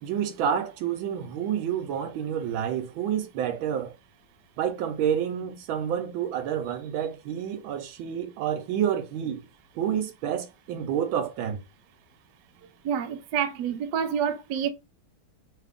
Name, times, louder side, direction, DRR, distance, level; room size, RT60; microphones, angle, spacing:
voice 1, 0.0-3.9 4.6-9.4 9.8-11.6, right 9 dB, 90° right, 1.5 m, -29 dB
voice 2, 12.8-14.7, right 8 dB, 70° right, 1.1 m, -28 dB
3.8 x 2.4 x 3.4 m
omnidirectional pair, 2.1 m